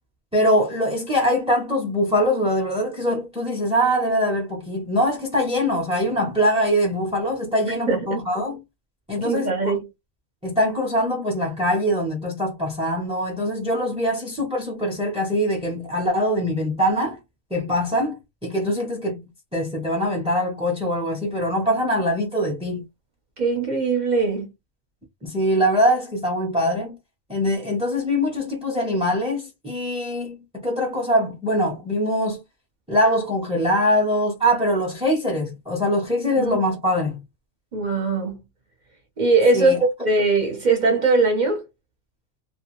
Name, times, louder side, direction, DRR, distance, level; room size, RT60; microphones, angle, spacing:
voice 1, 0.3-8.6 9.1-9.7 10.4-17.2 17.5-19.3 19.5-22.8 25.2-27.0 27.3-32.4 32.9-37.2 39.5-39.8, equal, 5° right, 0.5 m, -23 dB
voice 2, 7.9-8.2 9.2-9.9 23.4-24.5 36.4-36.6 37.7-38.4 39.2-39.8 40.0-41.7, right 3 dB, 40° right, 0.8 m, -21 dB
2.4 x 2.3 x 3.0 m
omnidirectional pair, 1.4 m